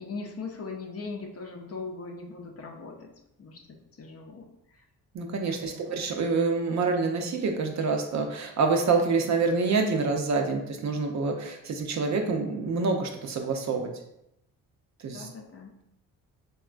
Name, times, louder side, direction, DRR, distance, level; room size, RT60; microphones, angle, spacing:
voice 1, 0.0-3.1 3.4-4.8 5.6-5.9 15.1-15.7, left 4 dB, 40° left, 1 dB, 0.6 m, -40 dB
voice 2, 5.1-13.9 15.0-15.3, right 4 dB, 50° right, 3 dB, 0.6 m, -27 dB
3.5 x 2.3 x 2.4 m, 0.81 s
supercardioid pair, 60°, 37 cm